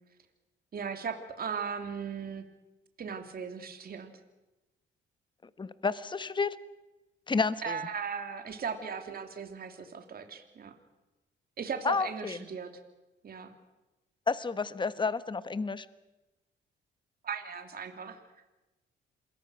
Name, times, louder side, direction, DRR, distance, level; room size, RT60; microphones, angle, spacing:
voice 1, 0.7-2.4 3.0-4.1 7.6-10.8 11.6-12.7 13.2-13.5 17.2-18.2, right 6 dB, 50° right, 6 dB, 2.7 m, -37 dB
voice 2, 5.6-6.5 7.3-7.8 11.8-12.4 14.3-15.8, left 4 dB, 25° left, 14 dB, 1.2 m, -30 dB
27.5 x 22.0 x 6.3 m, 1.1 s
cardioid pair, 90°, 20 cm